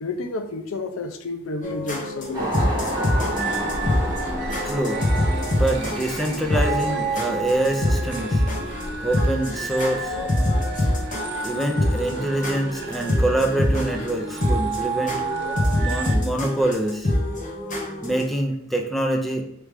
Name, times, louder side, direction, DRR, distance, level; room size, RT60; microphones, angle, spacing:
voice 1, 0.0-2.7 4.4-4.6, left 3 dB, 90° left, 8 dB, 0.5 m, -31 dB
sound 1, 1.6-18.2, left 1 dB, 40° left, 1.0 m, -25 dB
sound 2, 2.3-11.0, equal, 15° right, 1.2 m, -32 dB
sound 3, 2.9-16.2, right 5 dB, 55° right, 0.7 m, -32 dB
voice 2, 4.5-5.0 5.5-8.4 9.0-10.2 11.4-15.2 15.8-17.1 18.0-19.4, right 1 dB, ahead, 2 dB, 0.5 m, -25 dB
3.4 x 3.1 x 4.8 m, 0.75 s
head